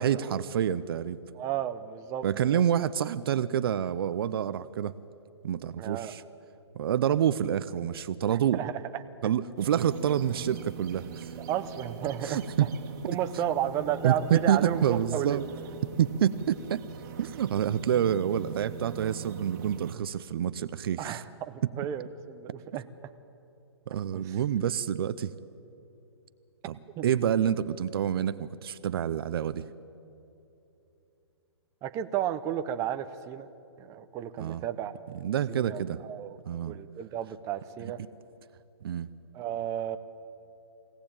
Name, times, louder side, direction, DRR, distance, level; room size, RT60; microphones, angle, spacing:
voice 1, 0.0-1.2 2.2-5.0 5.4-6.2 6.7-8.6 9.2-11.3 12.2-12.7 14.0-15.5 16.0-16.8 17.2-21.2 23.9-25.3 26.7-29.6 34.4-34.6 35.1-36.0 36.5-36.8 37.8-37.9 38.8-39.1, right 9 dB, 55° right, 14 dB, 0.7 m, -28 dB
voice 2, 1.3-2.6 5.8-6.1 8.3-9.0 11.5-12.4 13.1-15.4 21.0-22.8 24.1-24.3 27.0-27.1 31.8-33.5 33.8-34.9 35.5-36.4 36.6-38.0 39.3-40.0, right 10 dB, 20° right, 9 dB, 0.8 m, -33 dB
sound 1, 9.6-20.0, right 6 dB, 40° right, 1.9 m, -42 dB
23.0 x 17.5 x 8.9 m, 2.8 s
hypercardioid pair, 145°, 15 cm